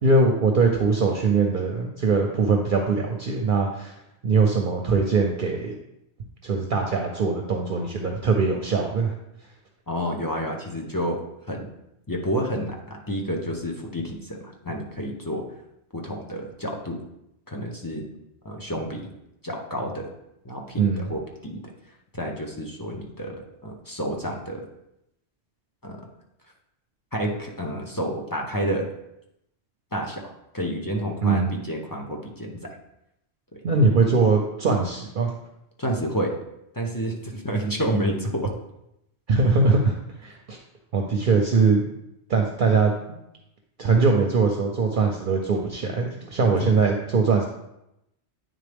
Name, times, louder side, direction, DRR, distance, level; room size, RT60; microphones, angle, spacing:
voice 1, 0.0-4.0 4.2-5.8 6.4-9.1 20.8-21.1 31.2-31.6 33.6-35.3 39.3-39.9 40.2-40.6 40.9-41.9 42.3-42.9 43.8-47.5, right 4 dB, 55° right, 2 dB, 0.7 m, -21 dB
voice 2, 9.9-11.7 12.1-15.4 15.9-17.0 17.5-18.0 18.4-19.1 19.4-20.1 20.4-21.6 22.1-24.7 25.8-26.0 27.1-28.9 29.9-30.2 30.5-32.7 35.8-36.4 36.7-38.5 46.6-46.7, equal, 25° left, 0 dB, 0.6 m, -29 dB
9.2 x 3.7 x 3.4 m, 0.84 s
omnidirectional pair, 1.1 m